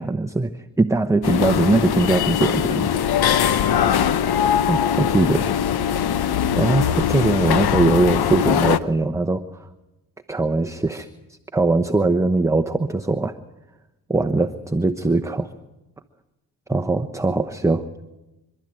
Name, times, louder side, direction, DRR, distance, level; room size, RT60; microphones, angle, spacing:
voice 1, 0.0-2.9 4.7-5.5 6.4-9.7 10.3-11.1 11.5-13.3 14.1-15.5 16.7-17.9, right 2 dB, 5° right, 7 dB, 1.0 m, -21 dB
sound 1, 1.2-8.8, left 9 dB, 65° left, 1.0 m, -21 dB
26.0 x 12.5 x 9.0 m, 1.0 s
supercardioid pair, 70°, 41 cm